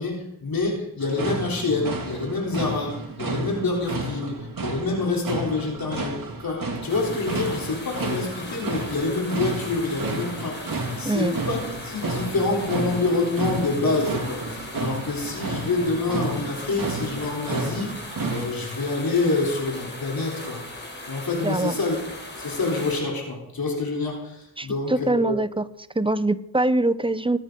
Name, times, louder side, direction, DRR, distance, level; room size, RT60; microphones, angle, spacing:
voice 1, 0.0-6.2 6.4-11.6 11.8-20.6 21.1-22.0 22.4-25.4, left 3 dB, 65° left, -2 dB, 3.9 m, -27 dB
sound 1, 1.0-18.5, right 2 dB, 60° right, 2.7 m, -32 dB
sound 2, 6.9-23.0, left 2 dB, 30° left, 4.2 m, -38 dB
voice 2, 11.0-11.3 21.4-21.8 24.6-25.7 25.9-27.4, right 2 dB, 15° right, 14 dB, 0.8 m, -23 dB
23.0 x 9.0 x 4.0 m, 0.81 s
cardioid pair, 50°, 38 cm